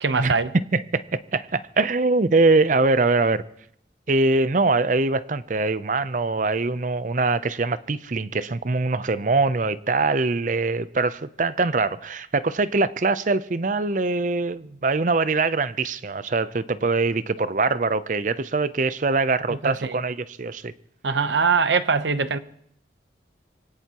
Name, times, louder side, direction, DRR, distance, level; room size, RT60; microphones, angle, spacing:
voice 1, 0.0-0.5 19.5-20.0 21.0-22.4, right 5 dB, 80° right, 0.8 m, -22 dB
voice 2, 0.7-3.4 4.1-20.7, right 3 dB, 45° right, 0.6 m, -23 dB
24.0 x 17.5 x 3.0 m
head